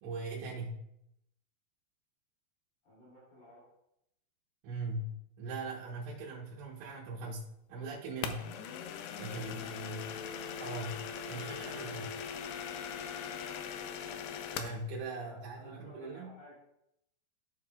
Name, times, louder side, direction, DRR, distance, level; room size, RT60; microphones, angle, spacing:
voice 1, 0.0-0.8 4.6-8.5 9.2-10.1 10.6-12.1 14.5-16.3, right 2 dB, 80° right, -5 dB, 3.5 m, -40 dB
voice 2, 2.8-3.7 9.3-9.9 11.5-12.4 15.0-16.5, left 1 dB, 55° left, -7 dB, 4.8 m, -56 dB
sound 1, 8.2-14.8, left 7 dB, 90° left, 2.4 m, -40 dB
13.0 x 7.0 x 2.4 m, 0.81 s
omnidirectional pair, 5.4 m